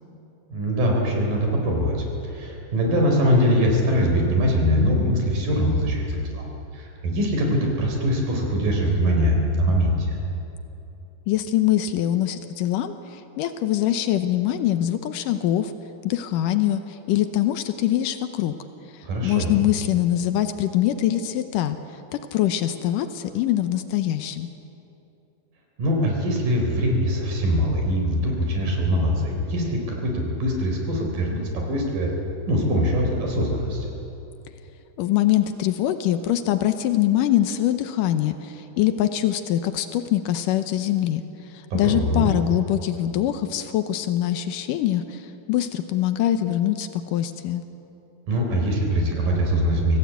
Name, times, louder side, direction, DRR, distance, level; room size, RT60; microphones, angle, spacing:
voice 1, 0.5-10.1 19.0-19.5 25.8-32.1 32.5-33.9 41.7-42.3 48.3-50.0, equal, 85° right, 1 dB, 5.6 m, -22 dB
voice 2, 11.3-15.7 16.0-18.5 19.2-21.8 22.1-24.5 35.0-41.2 41.7-47.6, left 12 dB, 85° left, 9 dB, 2.5 m, -23 dB
25.5 x 16.5 x 8.4 m, 2.9 s
omnidirectional pair, 3.8 m